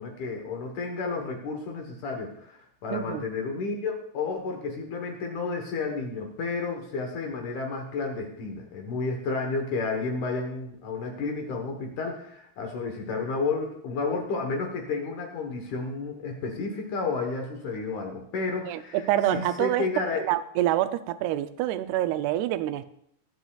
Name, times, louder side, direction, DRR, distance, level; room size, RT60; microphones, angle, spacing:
voice 1, 0.0-20.3, left 4 dB, 65° left, 3 dB, 2.3 m, -31 dB
voice 2, 2.9-3.3 18.7-19.8 20.2-22.8, right 13 dB, 90° right, 12 dB, 2.6 m, -26 dB
21.5 x 7.9 x 2.3 m, 0.72 s
omnidirectional pair, 4.5 m